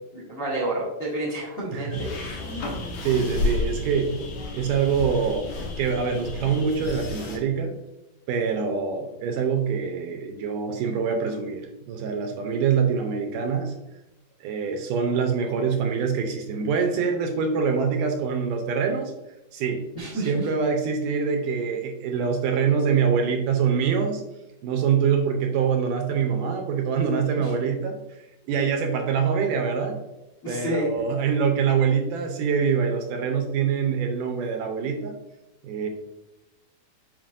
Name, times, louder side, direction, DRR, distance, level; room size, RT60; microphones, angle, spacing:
voice 1, 0.1-2.4 19.9-20.5 30.4-30.9, right 1 dB, 40° left, -4 dB, 1.2 m, -29 dB
sound 1, 1.9-7.4, left 2 dB, 65° left, 1.9 m, -31 dB
voice 2, 3.0-4.2 4.5-5.5 5.8-7.7 8.3-13.7 14.4-19.1 19.5-19.8 20.1-24.2 24.6-28.0 28.5-30.0 30.5-35.2 35.6-35.9, right 6 dB, 80° right, 4 dB, 2.1 m, -24 dB
7.3 x 5.1 x 2.5 m, 0.96 s
omnidirectional pair, 4.0 m